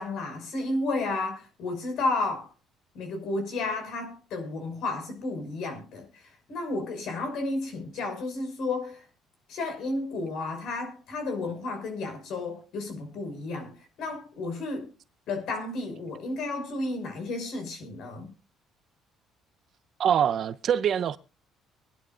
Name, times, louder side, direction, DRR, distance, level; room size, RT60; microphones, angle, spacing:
voice 1, 0.0-2.5 2.9-9.0 9.5-14.9 15.3-18.3, left 2 dB, 65° left, 5.8 m, -32 dB
voice 2, 20.0-21.2, right 9 dB, 50° right, 0.7 m, -24 dB
24.5 x 11.0 x 2.5 m
cardioid pair, 135°, 0 cm